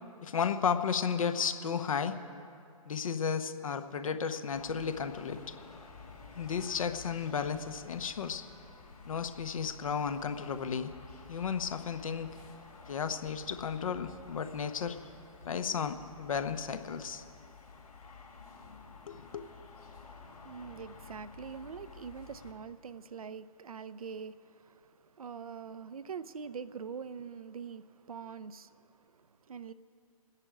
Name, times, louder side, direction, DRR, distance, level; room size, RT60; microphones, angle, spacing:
voice 1, 0.2-2.1 2.9-5.5 6.4-8.4 9.0-10.9 11.3-12.4 12.9-15.0 15.4-17.2 19.1-19.5, left 6 dB, 65° left, 9 dB, 0.9 m, -33 dB
sound 1, 4.5-22.5, left 4 dB, 85° left, 3.3 m, -52 dB
voice 2, 20.1-29.7, right 6 dB, 75° right, 15 dB, 0.6 m, -44 dB
25.0 x 10.0 x 4.9 m, 2.4 s
figure-of-eight pair, 130°, 19 cm